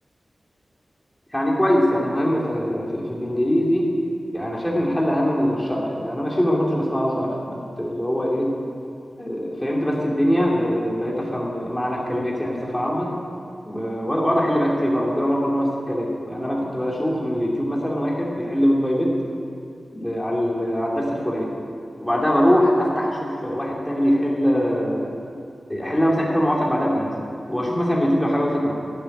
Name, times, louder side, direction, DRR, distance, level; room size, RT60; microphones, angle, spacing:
voice 1, 1.3-3.9 4.3-8.5 9.2-13.1 13.6-19.1 19.9-21.5 22.0-25.1 25.7-27.1 27.5-28.7, equal, 5° left, -3 dB, 2.9 m, -22 dB
12.0 x 11.0 x 9.3 m, 2.5 s
wide cardioid pair, 120°, 0 cm